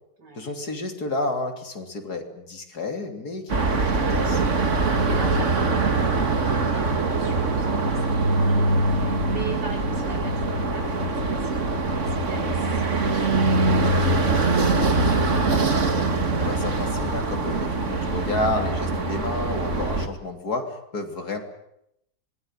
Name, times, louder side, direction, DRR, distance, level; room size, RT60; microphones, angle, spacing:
voice 1, 0.4-4.4 16.4-21.4, left 2 dB, 65° left, 5 dB, 3.8 m, -30 dB
sound 1, 3.5-20.1, right 3 dB, 45° right, 2.3 m, -23 dB
voice 2, 4.8-11.7 12.0-15.3, right 2 dB, 85° right, 2 dB, 7.7 m, -40 dB
26.0 x 21.0 x 9.1 m, 0.79 s
omnidirectional pair, 1.8 m